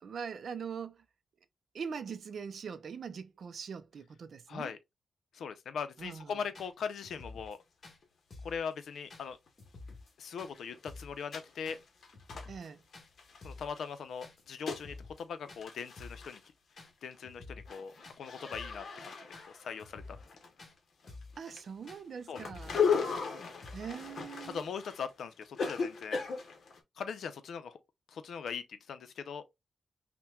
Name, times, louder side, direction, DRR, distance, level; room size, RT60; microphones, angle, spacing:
voice 1, 0.0-1.0 1.7-4.7 6.0-6.4 12.5-12.8 21.4-22.8 23.7-24.7, right 6 dB, 60° right, 0.5 m, -42 dB
voice 2, 4.5-4.8 5.3-7.6 8.4-9.4 10.2-11.8 13.4-16.4 17.0-20.2 22.3-22.5 24.5-26.2 27.0-27.8 28.1-29.4, left 6 dB, 85° left, 0.5 m, -40 dB
sound 1, 6.0-6.1 6.5-6.7 7.0-7.6 7.8-8.0 8.3-8.6 9.1-9.3 9.6-10.1 10.4-10.5 10.9-11.2 11.7-11.8 12.1-12.7 12.9-13.1 13.4-13.7 14.2-14.4 14.7-15.2 15.5-15.6 16.0-16.3 16.8-16.9 17.2-17.8 18.0-18.2 18.5-18.8 19.3-19.5 19.8-20.3 20.6-20.7 21.1-21.4 21.9-22.0 22.3-22.9 23.1-23.3 23.6-23.9 24.4-24.6, left 3 dB, 45° left, 1.3 m, -50 dB
sound 2, 7.5-7.6 8.0-8.1 9.5-9.6 9.9-10.0 10.3-13.9 14.2-14.9 15.2-15.3 15.5-16.5 16.8-17.2 17.5-20.8 21.0-26.8, left 6 dB, 65° left, 0.9 m, -37 dB
5.7 x 2.2 x 2.3 m
wide cardioid pair, 130°, 0 cm